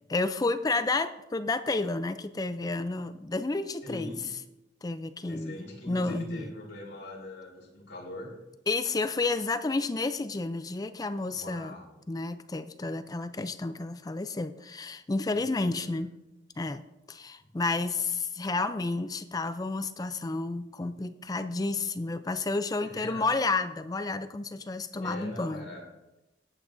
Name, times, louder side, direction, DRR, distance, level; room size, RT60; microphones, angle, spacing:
voice 1, 0.1-4.1 4.8-6.5 8.7-11.7 12.1-16.2 16.6-16.8 17.1-25.7, left 3 dB, 20° left, 11 dB, 0.4 m, -31 dB
voice 2, 3.8-4.3 5.3-8.3 11.3-11.9 15.7-16.0 22.8-23.3 25.0-25.8, left 2 dB, 80° left, -3 dB, 4.1 m, -42 dB
18.5 x 8.5 x 2.6 m, 0.97 s
head